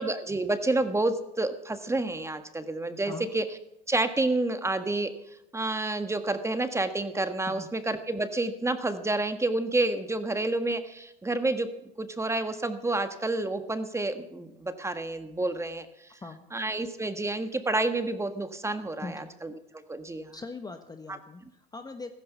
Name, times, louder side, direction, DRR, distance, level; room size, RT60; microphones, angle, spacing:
voice 1, 0.0-3.4 3.9-5.1 5.5-11.7 12.0-15.9 16.5-20.3, right 2 dB, 10° right, 9 dB, 1.5 m, -29 dB
voice 2, 16.1-16.4 19.0-19.3 20.3-22.1, left 3 dB, 15° left, 7 dB, 1.2 m, -41 dB
16.0 x 15.5 x 5.7 m, 0.83 s
hypercardioid pair, 90°, 29 cm